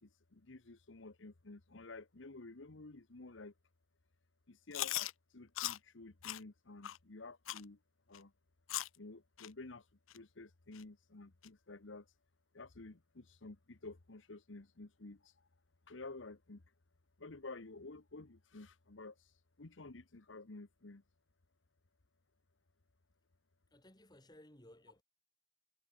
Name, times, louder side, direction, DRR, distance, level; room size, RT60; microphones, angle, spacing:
voice 1, 0.0-3.5 4.5-5.1 5.3-7.8 8.1-8.3 9.0-9.9 10.1-12.1 12.5-15.3 15.9-16.6 17.2-21.0, left 3 dB, 70° left, 1.2 m, -52 dB
Chewing mastication, 4.7-5.1 5.6-5.8 6.2-6.4 6.8-7.0 7.5-7.6 8.1-8.2 8.7-9.0 9.4-9.5 10.1-10.2 10.7-10.8 11.4-11.5, left 15 dB, 90° left, 0.5 m, -39 dB
voice 2, 23.7-25.0, left 1 dB, 20° left, 4.6 m, -60 dB
head